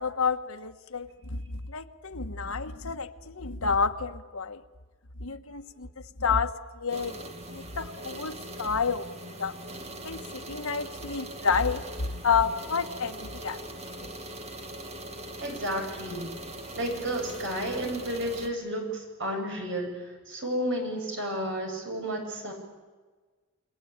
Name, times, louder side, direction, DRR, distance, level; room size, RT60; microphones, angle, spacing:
voice 1, 0.0-4.6 5.2-5.9 6.2-7.2 7.5-8.3 8.6-9.5 10.0-11.8 12.2-13.6 14.0-14.1, left 5 dB, 75° left, 6 dB, 1.4 m, -30 dB
sound 1, 6.9-18.5, right 1 dB, 30° right, 2.3 m, -41 dB
voice 2, 15.4-16.3 16.7-19.9 20.3-22.5, equal, 60° right, 2 dB, 7.8 m, -32 dB
29.0 x 22.0 x 8.9 m, 1.4 s
head